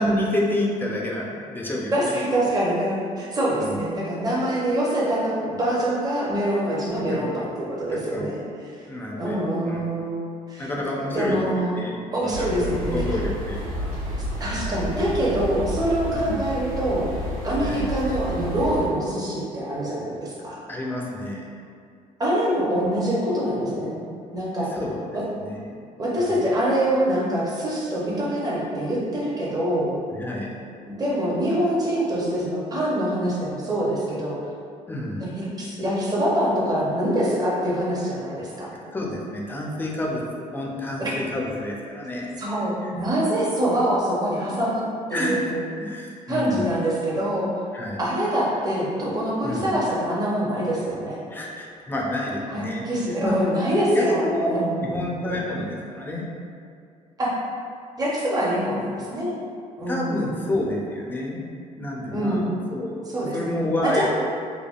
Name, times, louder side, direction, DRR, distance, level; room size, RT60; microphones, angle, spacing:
voice 1, 0.0-2.1 2.4-2.5 3.5-3.8 7.1-7.4 8.1-8.3 8.9-9.4 9.6-9.8 10.6-11.4 11.7-13.9 16.1-16.5 17.6-17.9 20.7-21.6 24.7-25.0 25.4-25.8 26.2-26.3 30.1-30.6 34.9-35.3 38.9-42.4 42.8-42.9 45.1-45.4 45.8-46.8 47.7-48.0 49.4-49.8 51.3-52.9 53.2-53.4 53.9-54.5 54.8-56.3 59.9-61.4 61.8-62.4 62.7-63.0 63.3-64.1, left 1 dB, 15° left, -2 dB, 0.4 m, -29 dB
voice 2, 1.9-8.4 8.8-8.9 9.2-10.7 11.1-11.8 12.1-13.2 14.4-17.1 17.4-20.6 22.2-24.0 24.3-24.7 25.1-25.2 26.0-30.0 30.9-34.4 35.2-38.7 41.0-41.1 42.4-44.8 45.1-45.6 46.3-47.5 48.0-51.2 52.5-54.2 54.5-54.8 57.2-57.3 58.0-59.3 59.8-60.4 62.1-62.6 63.1-64.1, right 1 dB, 25° right, -6 dB, 0.7 m, -25 dB
sound 1, 12.3-18.9, equal, 65° right, 1.3 m, -30 dB
3.3 x 2.2 x 2.4 m, 2.3 s
cardioid pair, 115°, 14 cm